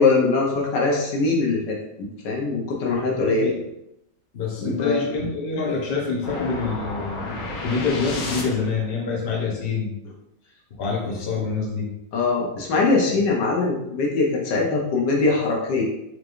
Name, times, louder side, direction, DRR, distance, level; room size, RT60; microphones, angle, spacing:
voice 1, 0.0-3.5 4.6-5.0 12.1-15.8, left 3 dB, 65° left, -2 dB, 1.4 m, -22 dB
voice 2, 2.9-3.6 4.3-9.9 10.8-11.9, left 4 dB, 45° left, -3 dB, 0.7 m, -26 dB
sound 1, 6.2-8.9, left 2 dB, 85° left, 1.6 m, -32 dB
4.5 x 3.3 x 2.5 m, 0.84 s
omnidirectional pair, 2.2 m